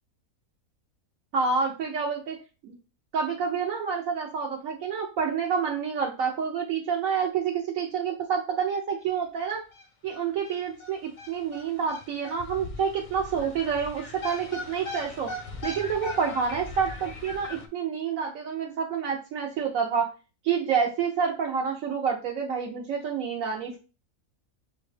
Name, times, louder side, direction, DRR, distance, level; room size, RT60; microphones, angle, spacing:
voice 1, 1.3-2.4 2.6-2.7 3.1-9.6 10.0-15.3 15.6-20.1 20.4-23.8, right 6 dB, 70° right, 0 dB, 1.1 m, -28 dB
sound 1, 9.0-9.1 9.4-9.5 9.7-17.7, left 3 dB, 50° left, 0.5 m, -40 dB
6.7 x 2.3 x 3.2 m, 0.32 s
omnidirectional pair, 1.5 m